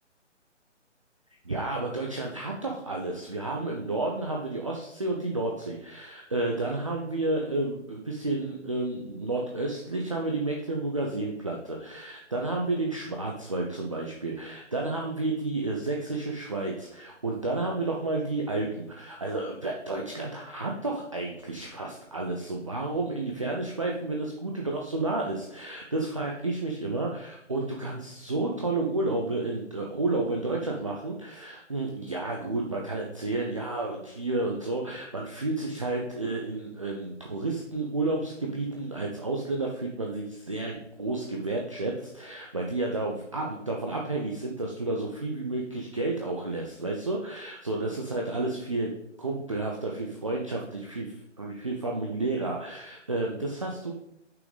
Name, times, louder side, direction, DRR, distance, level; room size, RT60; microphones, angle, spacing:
voice 1, 1.4-48.9 49.2-53.9, right 2 dB, 25° right, 0 dB, 0.5 m, -31 dB
6.1 x 5.8 x 3.9 m, 0.77 s
figure-of-eight pair, 145°, 37 cm